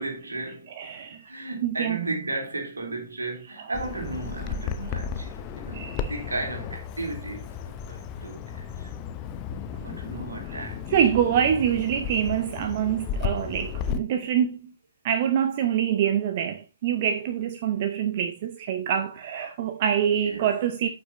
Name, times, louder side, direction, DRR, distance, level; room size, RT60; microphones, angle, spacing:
voice 1, 0.0-0.7 1.1-8.9 9.8-10.9 20.2-20.5, right 2 dB, 70° right, 3.3 m, -35 dB
voice 2, 0.8-1.2 1.6-2.0 5.7-6.1 10.5-10.6 10.9-14.7 15.0-20.9, right 9 dB, 35° right, 0.7 m, -25 dB
Bird vocalization bird call bird song, 3.7-14.0, left 7 dB, 25° left, 0.8 m, -34 dB
11.5 x 6.1 x 3.0 m
figure-of-eight pair, 125°, 0 cm